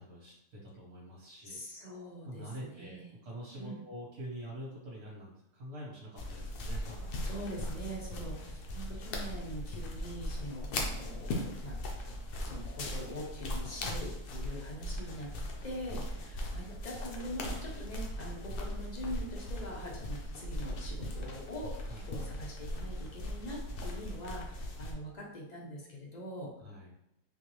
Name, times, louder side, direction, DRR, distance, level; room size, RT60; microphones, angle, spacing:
voice 1, 0.0-1.6 2.2-7.1 14.5-14.6 15.5-15.8 21.9-22.1 26.6-26.9, right 1 dB, 60° right, -5 dB, 1.4 m, -46 dB
voice 2, 1.4-3.1 3.5-3.8 7.2-11.8 12.4-15.4 15.6-21.7 22.0-26.5, equal, 45° left, -3 dB, 0.5 m, -43 dB
sound 1, 6.2-24.9, left 1 dB, 75° left, 1.1 m, -39 dB
4.1 x 2.6 x 3.0 m, 0.82 s
omnidirectional pair, 1.8 m